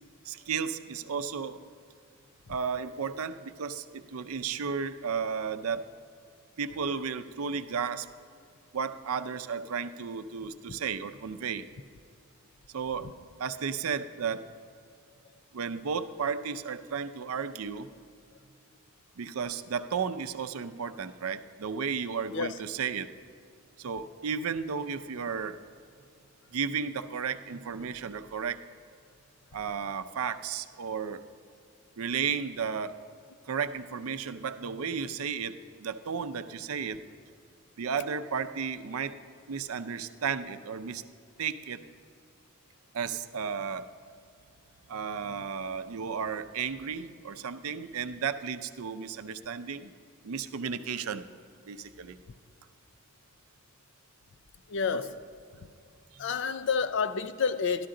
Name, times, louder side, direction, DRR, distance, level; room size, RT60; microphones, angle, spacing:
voice 1, 0.2-1.6 2.5-5.8 6.6-8.1 8.7-11.7 12.7-13.1 13.4-14.5 15.5-17.9 19.2-23.1 23.8-25.6 26.5-28.6 29.5-31.2 32.0-32.9 33.5-37.0 37.8-39.2 39.5-41.0 41.4-41.8 42.9-43.9 44.9-49.9 50.2-51.3 51.7-52.2 54.9-55.0 56.1-56.2, right 6 dB, 80° right, 0.5 m, -33 dB
voice 2, 54.7-55.1 56.2-57.9, left 5 dB, 55° left, 0.4 m, -29 dB
12.5 x 12.0 x 3.8 m
head